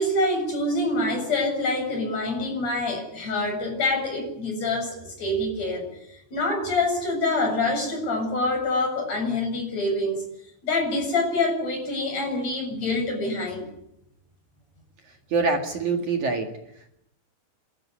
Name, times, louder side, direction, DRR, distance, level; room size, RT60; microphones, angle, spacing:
voice 1, 0.0-5.9 6.3-10.2 10.6-13.6, left 2 dB, 35° left, 2 dB, 8.3 m, -26 dB
voice 2, 15.3-17.0, right 4 dB, 50° right, 3 dB, 2.5 m, -26 dB
27.5 x 14.0 x 9.8 m, 0.80 s
omnidirectional pair, 5.7 m